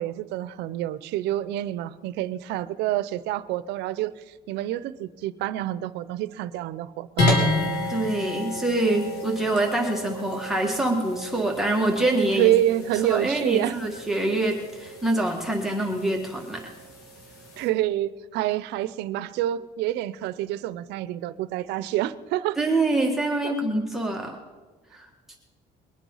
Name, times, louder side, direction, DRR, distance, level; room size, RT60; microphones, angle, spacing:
voice 1, 0.0-7.3 12.4-13.8 17.6-22.6 23.4-23.5, right 14 dB, 90° right, 16 dB, 0.6 m, -27 dB
sound 1, 7.2-17.7, left 1 dB, 85° left, 3.2 m, -31 dB
voice 2, 7.9-12.5 13.1-16.6 22.6-24.4 24.9-25.1, right 2 dB, ahead, 2 dB, 1.8 m, -25 dB
22.0 x 9.1 x 5.6 m, 1.3 s
cardioid pair, 110°, 17 cm